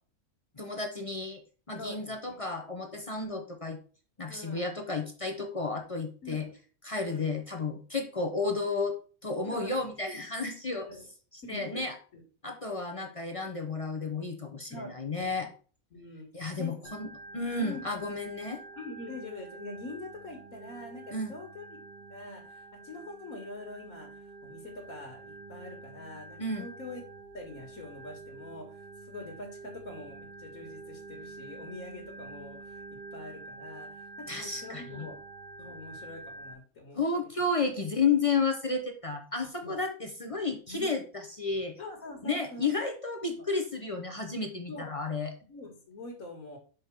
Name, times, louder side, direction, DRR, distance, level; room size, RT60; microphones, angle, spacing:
voice 1, 0.6-1.4 1.7-3.8 4.2-6.5 6.8-9.0 9.2-10.9 11.5-11.9 12.4-15.5 16.3-18.6 21.1-21.3 26.4-26.7 34.3-35.1 36.9-41.8 42.2-45.3, left 3 dB, 30° left, 3 dB, 0.7 m, -32 dB
voice 2, 1.8-2.3 3.2-3.4 4.3-4.7 6.2-6.5 7.0-7.3 9.5-9.7 10.7-11.1 11.4-11.8 12.1-12.2 14.7-15.5 15.9-16.3 16.6-16.9 17.5-17.8 18.8-21.8 22.1-27.0 27.3-32.8 33.1-35.2 35.6-37.0 39.6-39.8 40.7-40.9 41.8-42.7 43.4-43.5 44.7-44.9 45.5-46.6, left 2 dB, 70° left, 0 dB, 2.0 m, -44 dB
Organ, 16.8-36.5, right 3 dB, 85° right, 1.7 m, -47 dB
6.1 x 5.0 x 4.6 m, 0.39 s
omnidirectional pair, 1.5 m